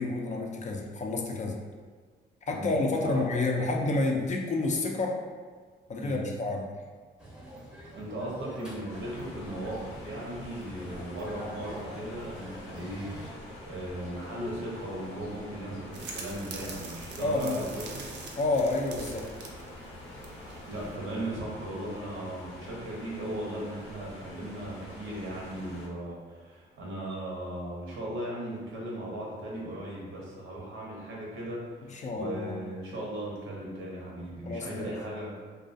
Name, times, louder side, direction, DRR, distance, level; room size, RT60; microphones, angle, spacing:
voice 1, 0.0-1.6 2.5-5.2 5.9-6.7 17.2-17.6 18.4-19.3 31.9-32.6 34.4-34.9, left 2 dB, 35° left, 1 dB, 0.4 m, -29 dB
voice 2, 2.5-3.2 5.9-6.2 7.9-18.0 20.7-35.3, right 1 dB, 80° right, -4 dB, 0.8 m, -37 dB
sound 1, 7.2-13.3, equal, 5° right, 0.6 m, -45 dB
sound 2, 8.9-25.9, left 1 dB, 90° left, 0.6 m, -46 dB
sound 3, 15.9-21.0, right 3 dB, 60° right, 0.4 m, -43 dB
2.4 x 2.2 x 2.5 m, 1.5 s
cardioid pair, 90°, 20 cm